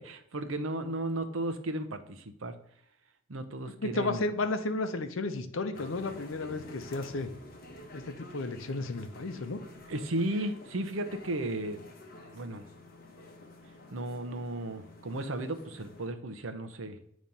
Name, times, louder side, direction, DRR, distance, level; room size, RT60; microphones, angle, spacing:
voice 1, 0.0-2.5 3.3-4.2 9.9-11.8 12.3-12.7 13.9-17.0, right 1 dB, 75° right, 10 dB, 0.7 m, -34 dB
voice 2, 3.8-7.3 7.9-9.6, left 2 dB, 75° left, 8 dB, 0.7 m, -33 dB
sound 1, 5.7-16.1, left 1 dB, 45° left, 1.1 m, -50 dB
8.7 x 3.1 x 5.4 m, 0.69 s
head